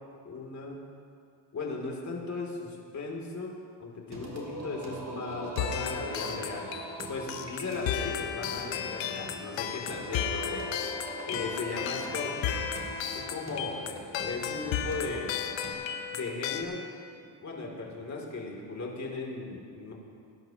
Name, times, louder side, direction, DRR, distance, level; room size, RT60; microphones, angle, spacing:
voice 1, 0.2-0.8 1.5-3.5 3.8-6.7 7.1-10.7 11.3-12.6 13.1-15.3 16.1-16.8 17.1-19.9, left 3 dB, 40° left, -1 dB, 3.0 m, -37 dB
Singing, 4.1-15.7, right 2 dB, 35° right, 2.7 m, -42 dB
sound 1, 5.6-16.6, left 8 dB, 75° left, 1.1 m, -34 dB
21.0 x 11.0 x 3.0 m, 2.3 s
cardioid pair, 90°, 45 cm